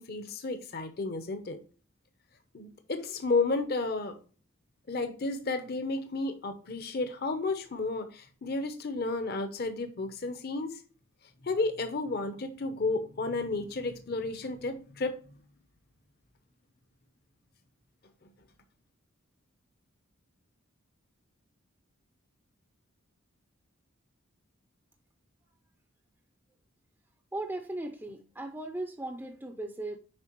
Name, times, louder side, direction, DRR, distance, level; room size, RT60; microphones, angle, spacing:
voice 1, 0.0-1.6 2.5-4.2 4.9-10.8 11.4-15.4, left 3 dB, 50° left, 0.7 m, -32 dB
voice 2, 27.3-30.0, right 2 dB, 10° right, 0.5 m, -37 dB
7.5 x 5.0 x 3.0 m
head